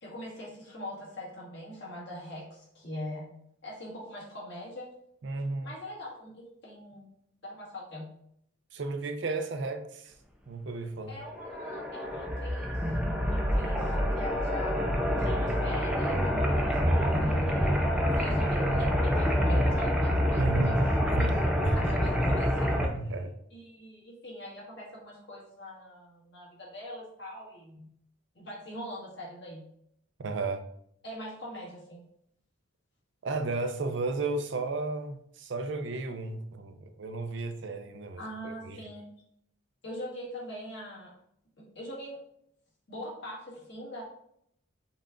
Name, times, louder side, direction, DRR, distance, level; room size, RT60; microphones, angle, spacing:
voice 1, 0.0-3.3 3.6-4.9 5.6-7.1 7.4-8.1 11.1-12.9 13.2-17.8 18.2-20.7 21.1-21.3 21.7-23.1 23.5-27.9 28.3-29.6 31.0-32.0 38.2-39.1 39.8-41.1 41.6-42.2 42.9-44.0, left 1 dB, 55° left, -5 dB, 1.7 m, -42 dB
voice 2, 5.2-5.7 8.7-10.1 10.5-11.2 20.4-20.8 21.1-21.8 22.8-23.3 30.2-30.6 33.2-38.8, right 3 dB, 60° right, 7 dB, 0.5 m, -34 dB
sound 1, 11.3-22.9, equal, 5° right, 0.4 m, -27 dB
5.5 x 2.4 x 3.8 m, 0.72 s
head